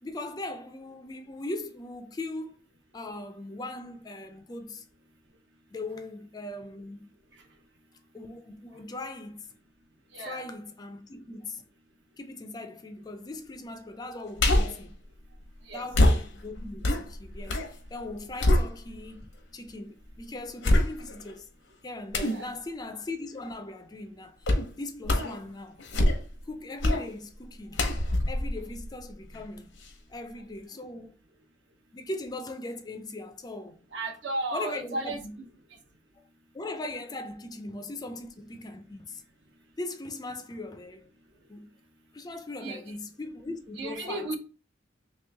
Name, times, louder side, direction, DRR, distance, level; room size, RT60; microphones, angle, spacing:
voice 1, 0.0-2.6 2.9-4.9 5.7-7.1 8.1-9.5 10.2-11.7 12.2-15.0 15.7-21.5 21.8-24.5 24.8-25.8 26.5-27.9 28.2-29.7 30.1-31.2 31.9-33.8 34.5-35.4 36.2-36.3 36.5-39.2 39.8-41.1 41.5-41.7 42.1-44.3, left 2 dB, 20° left, 0.4 m, -39 dB
voice 2, 10.1-10.5 15.6-15.8 22.2-22.5 30.7-30.8 33.9-35.2 42.6-42.9 43.8-44.4, right 2 dB, 65° right, 0.8 m, -34 dB
sound 1, 14.4-14.8 15.9-17.7 18.1-19.2 19.7-19.8 20.6-21.3 22.1-22.4 24.4-24.7 25.0-25.4 25.8-26.4 26.8-27.1 27.7-29.4 29.8-29.9, left 1 dB, 85° left, 0.8 m, -25 dB
3.1 x 3.0 x 3.3 m
head